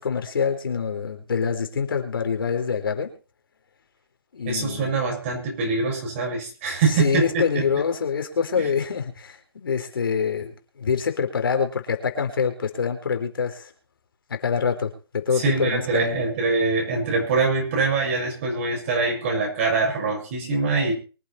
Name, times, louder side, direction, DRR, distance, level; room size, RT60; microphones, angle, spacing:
voice 1, 0.0-3.1 4.3-5.0 6.9-13.7 14.3-16.2, left 6 dB, 65° left, 5 dB, 4.1 m, -25 dB
voice 2, 4.5-7.7 8.6-8.7 15.4-20.9, right 4 dB, 30° right, 0 dB, 7.0 m, -24 dB
24.0 x 8.5 x 4.4 m, 0.36 s
hypercardioid pair, 160°, 13 cm